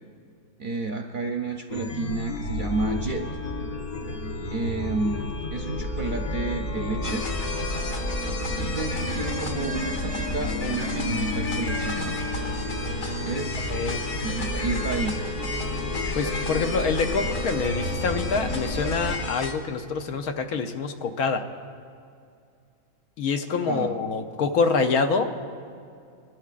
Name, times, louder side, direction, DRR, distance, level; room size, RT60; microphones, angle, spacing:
voice 1, 0.6-3.3 4.5-7.3 8.6-12.3 13.2-15.3 23.7-24.0, right 3 dB, 50° right, 2 dB, 0.6 m, -31 dB
Chime, 1.7-19.1, left 2 dB, 50° left, 0.5 m, -31 dB
sound 1, 7.0-19.5, left 1 dB, 65° left, 1.6 m, -34 dB
voice 2, 13.7-14.0 16.2-21.4 23.2-25.3, left 4 dB, 80° left, 6 dB, 1.3 m, -26 dB
23.0 x 12.5 x 2.4 m, 2.4 s
omnidirectional pair, 1.6 m